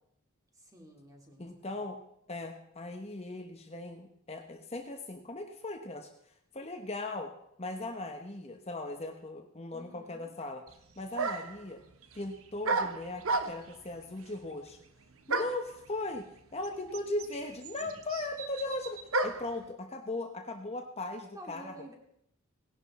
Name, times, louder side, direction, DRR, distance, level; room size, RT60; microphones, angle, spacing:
voice 1, 0.5-1.8 9.7-10.3 17.8-17.9 21.3-21.9, right 1 dB, 15° right, 2 dB, 2.3 m, -51 dB
voice 2, 1.4-2.0 2.3-6.1 6.5-7.3 7.6-10.6 11.0-11.8 12.1-14.8 15.3-21.7, left 2 dB, 30° left, 4 dB, 1.0 m, -38 dB
sound 1, 10.7-10.8 11.2-11.6 12.6-13.8 15.3-15.7 16.6-16.7 16.9-19.6, right 3 dB, 80° right, 0.9 m, -32 dB
18.0 x 11.5 x 4.2 m, 0.76 s
head